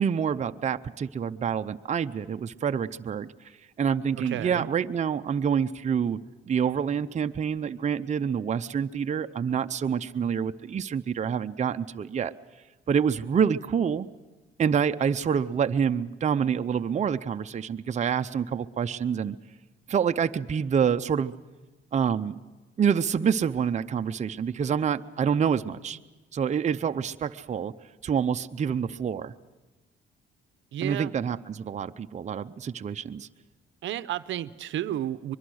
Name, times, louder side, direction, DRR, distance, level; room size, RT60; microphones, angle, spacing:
voice 1, 0.0-3.3 3.8-6.2 6.5-12.3 12.9-14.1 14.6-19.4 19.9-21.3 21.9-22.4 22.8-26.0 26.3-27.7 28.0-29.3 30.8-33.3, right 7 dB, 35° right, 8 dB, 0.6 m, -27 dB
voice 2, 4.2-4.7 30.7-31.1 33.8-35.4, right 12 dB, 75° right, 14 dB, 0.7 m, -32 dB
23.5 x 22.5 x 6.4 m, 1.2 s
cardioid pair, 90°, 20 cm